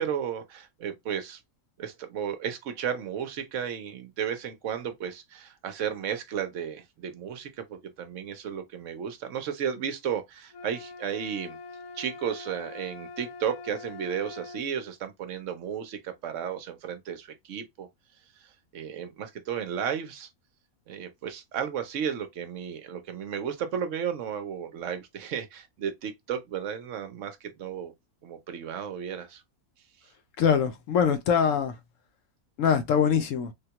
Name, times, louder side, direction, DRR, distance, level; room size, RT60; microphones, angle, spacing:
voice 1, 0.0-1.4 1.8-11.6 11.9-17.9 18.4-20.3 20.9-27.9 28.2-29.4, right 8 dB, 65° right, 0.9 m, -33 dB
sound 1, 10.5-14.7, left 4 dB, 85° left, 1.1 m, -43 dB
voice 2, 30.4-31.7 32.6-33.5, left 7 dB, 65° left, 0.9 m, -23 dB
3.5 x 2.2 x 2.8 m
omnidirectional pair, 1.6 m